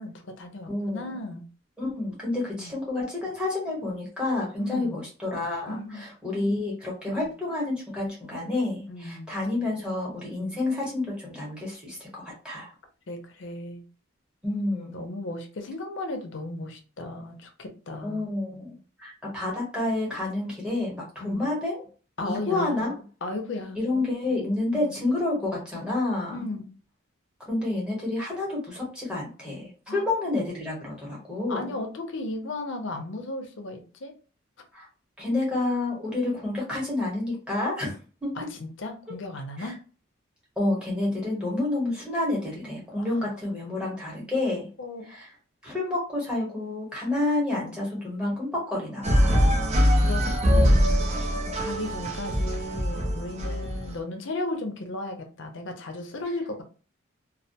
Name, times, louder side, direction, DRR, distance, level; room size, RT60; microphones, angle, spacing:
voice 1, 0.0-1.5 2.5-2.7 4.6-5.0 5.7-6.1 8.9-9.3 10.3-10.5 13.1-13.8 14.9-18.3 21.2-21.5 22.2-22.9 23.2-23.8 24.7-24.9 26.3-26.7 29.9-30.0 31.5-34.1 38.4-39.8 44.8-45.2 49.4-49.7 50.0-51.0 51.6-56.6, left 2 dB, 65° left, 5 dB, 0.5 m, -35 dB
voice 2, 0.7-1.1 1.8-12.7 14.4-15.1 18.0-21.8 22.2-22.9 23.7-26.4 27.5-31.7 34.7-34.9 35.2-38.5 39.6-39.7 40.6-44.7 45.1-45.3 45.6-49.5 51.3-51.5, left 2 dB, 5° right, -5 dB, 1.0 m, -29 dB
sound 1, 49.0-53.9, equal, 30° right, 0.4 m, -22 dB
2.3 x 2.2 x 2.7 m, 0.37 s
head